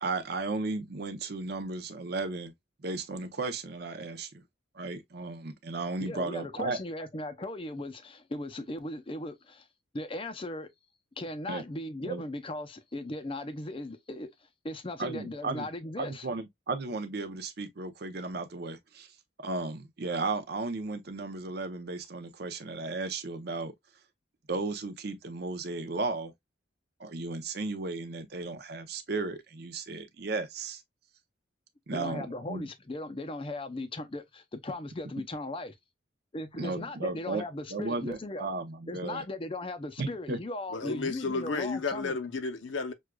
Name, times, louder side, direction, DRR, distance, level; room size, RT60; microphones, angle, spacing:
voice 1, 0.0-2.5 2.8-4.4 4.8-6.8 11.5-11.6 12.0-12.2 15.0-15.7 16.0-19.1 19.4-23.7 24.5-26.3 27.0-30.8 31.9-32.7 36.6-37.4 37.7-39.2 40.0-40.4, right 3 dB, 55° right, 0.6 m, -35 dB
voice 2, 6.0-9.7 9.9-10.7 11.2-14.3 14.6-16.3 31.9-35.7 36.3-38.5 38.9-42.2, left 1 dB, 30° left, 0.5 m, -38 dB
voice 3, 40.7-42.9, left 4 dB, 80° left, 0.7 m, -32 dB
6.2 x 2.4 x 2.2 m
head